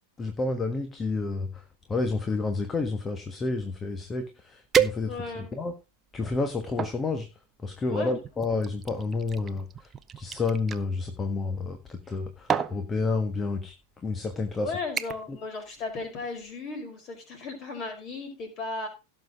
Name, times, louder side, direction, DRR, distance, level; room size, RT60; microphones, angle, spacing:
voice 1, 0.2-1.6 1.9-5.2 5.5-5.7 6.1-7.3 7.6-9.9 10.2-13.7 14.0-14.7 15.3-15.4, left 3 dB, 20° left, 7 dB, 1.4 m, -30 dB
sound 1, 4.1-4.2 4.7-5.5 6.1-7.0 7.9-10.8 11.9-12.2 12.5-12.8 13.7-13.8 14.3-14.5 15.0-15.4 15.7-16.0 16.4-16.5, right 7 dB, 20° right, 0.7 m, -30 dB
voice 2, 5.1-5.5 7.9-8.2 14.5-18.9, left 3 dB, 35° left, 4 dB, 5.1 m, -35 dB
16.5 x 7.0 x 3.7 m, 0.28 s
figure-of-eight pair, 90°, 0 cm